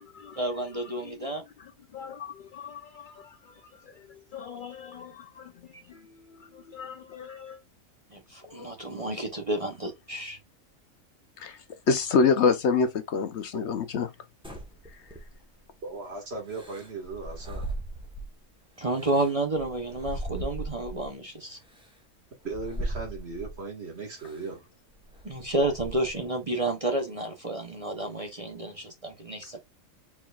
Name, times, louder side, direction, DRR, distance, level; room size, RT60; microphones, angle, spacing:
voice 1, 0.4-1.4 8.1-10.4 18.8-21.6 25.2-29.6, right 1 dB, 30° right, 0.7 m, -30 dB
voice 2, 1.9-3.4 4.0-6.0 6.3-7.6, left 8 dB, 80° left, 0.4 m, -44 dB
voice 3, 11.9-14.1, left 5 dB, 60° left, 0.9 m, -24 dB
sound 1, 14.4-15.6 16.5-18.4 18.8-21.1 21.7-21.9 22.5-23.6 24.2-24.5 24.9-26.2, right 1 dB, 5° right, 1.1 m, -38 dB
voice 4, 15.8-17.7 22.4-24.6, right 3 dB, 50° right, 2.0 m, -37 dB
4.7 x 4.5 x 2.4 m
omnidirectional pair, 1.4 m